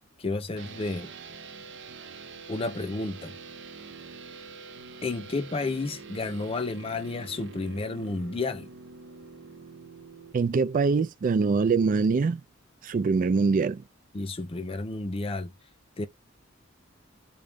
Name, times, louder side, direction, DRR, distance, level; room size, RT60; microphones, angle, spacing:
voice 1, 0.2-1.1 2.5-3.3 5.0-8.7 14.1-15.5 16.0-16.1, left 3 dB, 30° left, 0.5 m, -31 dB
sound 1, 0.6-10.3, right 4 dB, 65° right, 0.7 m, -45 dB
voice 2, 10.3-12.4 12.8-13.8, right 4 dB, 45° right, 0.3 m, -23 dB
3.8 x 2.3 x 3.4 m
head